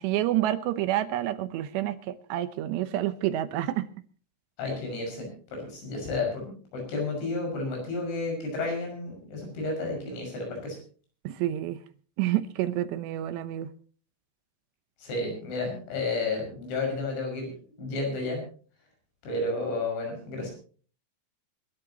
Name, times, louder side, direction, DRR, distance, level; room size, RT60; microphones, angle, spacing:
voice 1, 0.0-3.9 11.2-11.8 12.2-13.7, right 13 dB, 75° right, 12 dB, 2.9 m, -28 dB
voice 2, 4.6-10.8 15.0-17.5 17.8-18.4 19.2-20.5, left 3 dB, 80° left, 1 dB, 8.5 m, -31 dB
26.0 x 13.0 x 3.0 m, 0.41 s
omnidirectional pair, 5.3 m